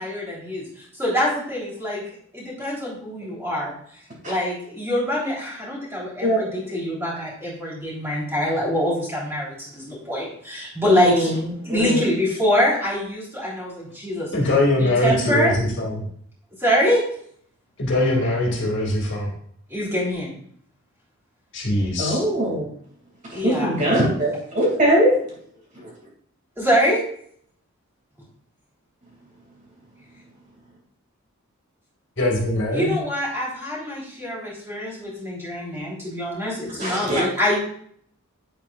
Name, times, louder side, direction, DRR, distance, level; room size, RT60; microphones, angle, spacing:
voice 1, 0.0-3.7 4.2-11.3 11.6-14.3 14.8-15.5 16.6-17.1 19.7-20.3 23.3-23.8 26.6-27.0 32.7-37.6, equal, 10° right, -6 dB, 3.6 m, -24 dB
voice 2, 10.8-12.0 22.0-22.7 23.3-25.1 25.7-25.9 36.8-37.2, equal, 35° right, -4 dB, 2.7 m, -21 dB
voice 3, 14.3-16.0 17.8-19.3 21.5-22.2 32.2-33.0, left 1 dB, 55° left, -2 dB, 2.4 m, -22 dB
9.7 x 8.1 x 2.5 m, 0.63 s
head